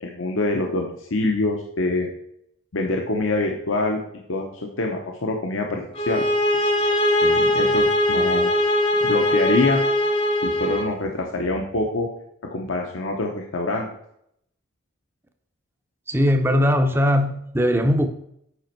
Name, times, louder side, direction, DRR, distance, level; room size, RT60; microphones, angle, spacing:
voice 1, 0.0-2.1 2.7-4.0 4.3-6.2 6.8-6.9 7.2-9.8 10.4-12.1 12.5-13.9, left 2 dB, 75° left, 1 dB, 0.8 m, -25 dB
sound 1, 5.9-10.9, left 1 dB, 30° left, 0.7 m, -21 dB
voice 2, 16.1-18.1, equal, 10° right, 6 dB, 0.6 m, -19 dB
8.0 x 5.1 x 4.5 m, 0.74 s
head